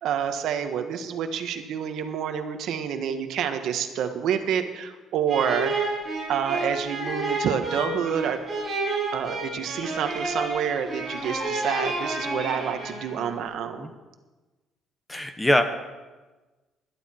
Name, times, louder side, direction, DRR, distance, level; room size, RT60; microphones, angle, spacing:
voice 1, 0.0-5.7 6.3-8.4 9.1-13.9, right 8 dB, 65° right, 7 dB, 1.4 m, -28 dB
sound 1, 5.3-13.3, right 2 dB, 20° right, 6.5 m, -30 dB
voice 2, 15.1-15.6, left 1 dB, 10° left, 8 dB, 1.1 m, -22 dB
20.0 x 12.0 x 4.5 m, 1.2 s
cardioid pair, 150°, 0 cm